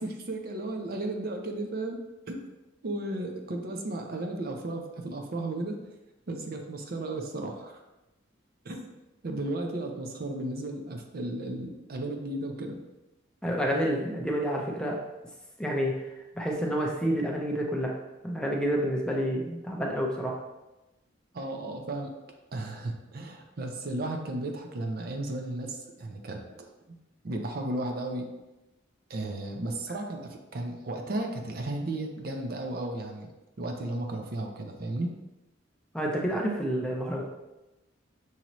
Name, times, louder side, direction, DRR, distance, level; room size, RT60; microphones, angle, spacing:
voice 1, 0.0-2.0 2.3-2.5 2.8-5.8 6.3-7.8 8.6-8.9 9.2-12.8 21.3-22.1 22.5-26.4 26.9-27.0 27.2-28.3 29.1-33.3 33.6-35.1, right 2 dB, 50° right, 3 dB, 0.5 m, -34 dB
voice 2, 13.4-15.0 15.6-15.9 16.4-17.9 18.2-20.4 35.9-37.2, equal, 5° left, -1 dB, 0.5 m, -29 dB
6.1 x 2.8 x 2.9 m, 1.0 s
head